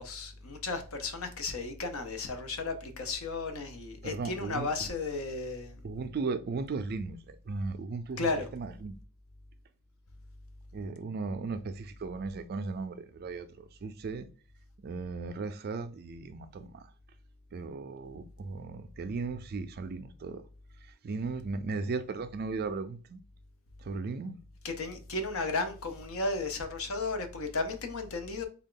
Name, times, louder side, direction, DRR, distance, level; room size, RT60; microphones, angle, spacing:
voice 1, 0.0-5.8 8.2-8.5 24.6-28.4, left 3 dB, 65° left, 0.7 m, -34 dB
voice 2, 4.0-4.9 5.8-9.0 10.7-14.3 14.8-16.9 17.5-20.4 20.8-23.2 23.8-24.4, right 4 dB, 45° right, 0.3 m, -36 dB
3.6 x 2.3 x 3.7 m
head